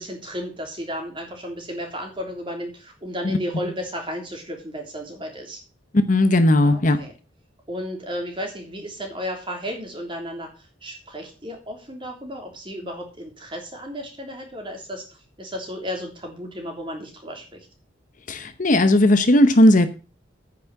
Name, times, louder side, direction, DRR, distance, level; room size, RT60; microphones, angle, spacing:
voice 1, 0.0-5.6 6.6-7.1 7.7-15.1 15.4-17.7, equal, 25° right, 2 dB, 3.3 m, -33 dB
voice 2, 5.9-7.0 18.3-19.9, left 1 dB, 45° left, 10 dB, 0.9 m, -16 dB
9.4 x 6.2 x 7.1 m, 0.33 s
head